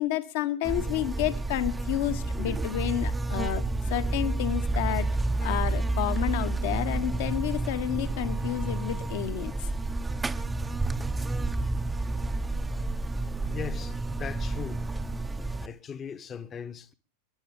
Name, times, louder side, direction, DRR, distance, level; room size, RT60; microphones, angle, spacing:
voice 1, 0.0-5.1 5.4-9.5, left 12 dB, 50° left, 1.2 m, -30 dB
Buzz, 0.6-15.7, right 2 dB, 10° right, 0.7 m, -30 dB
voice 2, 13.5-14.8 15.6-16.9, left 7 dB, 25° left, 1.0 m, -39 dB
28.0 x 11.0 x 3.6 m
figure-of-eight pair, 90°, 0 cm